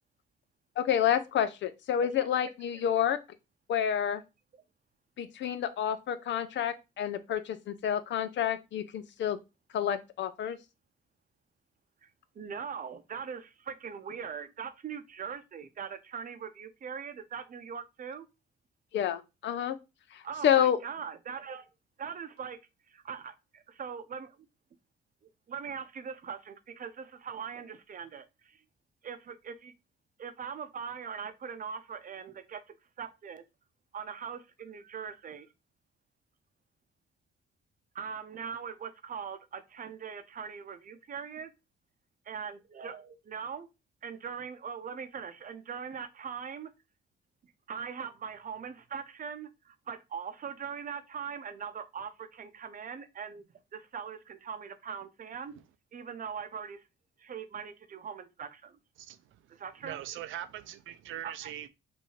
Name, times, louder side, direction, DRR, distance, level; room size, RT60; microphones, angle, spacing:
voice 1, 0.8-3.2 3.7-4.2 5.2-9.4 9.7-10.6 18.9-19.8 20.1-20.8, left 9 dB, 65° left, 0.6 m, -29 dB
voice 2, 12.3-18.3 20.2-21.7 22.0-22.6 22.9-24.4 25.5-28.6 29.0-29.7 30.2-32.6 33.0-33.4 33.9-35.5 37.9-41.5 42.3-43.7 44.0-46.7 47.7-55.5 55.9-56.8 57.2-58.8 59.5-60.2 61.2-61.5, right 7 dB, 45° right, 0.7 m, -41 dB
voice 3, 59.5-61.7, right 12 dB, 80° right, 0.5 m, -41 dB
5.4 x 2.7 x 3.2 m
cardioid pair, 90°, 20 cm